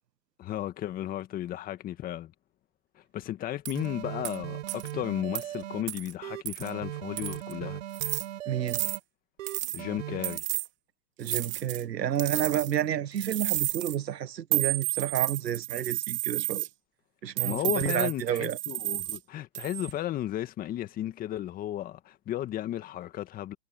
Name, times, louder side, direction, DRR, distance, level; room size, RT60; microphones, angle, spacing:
voice 1, 0.4-2.3 3.0-7.8 9.7-10.4 17.4-23.5, left 13 dB, 15° left, 1.8 m, -34 dB
sound 1, 3.6-3.8 4.2-4.4 4.7-4.9 5.3-5.4 5.9-6.1 6.5-6.7 7.2-7.5 7.9-8.2 8.7-9.0 9.5-9.8 10.2-10.7 11.2-11.8 12.2-12.8 13.2-14.0 14.5-16.7 17.4-19.2 19.5-19.9, right 18 dB, 20° right, 2.8 m, -31 dB
sound 2, 3.7-5.8 6.2-9.0 9.4-10.4, right 13 dB, 50° right, 5.8 m, -38 dB
voice 2, 8.5-8.8 11.2-16.6 17.2-18.6, right 10 dB, 75° right, 1.4 m, -30 dB
hypercardioid pair, 145°, 49 cm